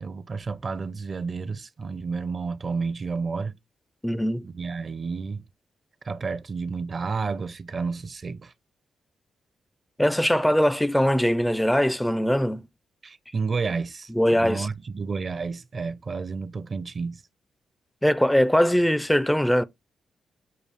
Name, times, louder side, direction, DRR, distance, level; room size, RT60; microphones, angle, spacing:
voice 1, 0.0-3.6 4.4-5.4 6.0-8.5 13.0-14.1 14.4-17.2, right 4 dB, 50° right, 0.6 m, -31 dB
voice 2, 4.0-4.5 10.0-12.7 14.1-14.7 18.0-19.6, equal, 5° left, 0.4 m, -21 dB
6.7 x 2.4 x 3.2 m
supercardioid pair, 55°, 0 cm